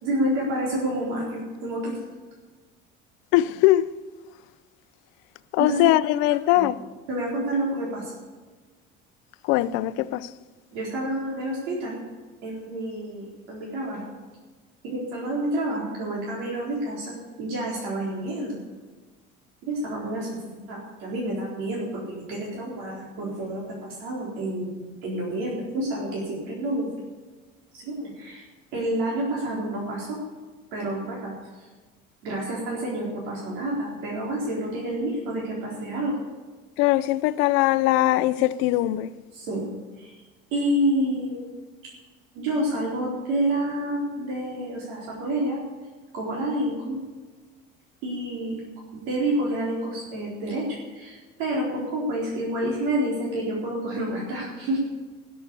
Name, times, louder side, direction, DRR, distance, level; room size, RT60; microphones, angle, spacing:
voice 1, 0.0-2.0 5.6-5.8 6.6-6.7 7.1-8.1 10.7-12.0 12.4-14.1 14.8-18.6 19.7-26.9 27.8-28.4 28.7-30.2 30.7-31.3 32.2-36.2 39.3-39.7 40.0-40.1 40.5-41.5 42.3-45.6 46.1-47.0 48.0-48.6 48.9-54.8, right 1 dB, 80° right, 4.1 m, -29 dB
voice 2, 3.3-3.9 5.5-6.8 9.4-10.3 36.8-39.1, left 16 dB, 70° left, 0.6 m, -21 dB
18.0 x 8.0 x 7.0 m
cardioid pair, 180°, 21 cm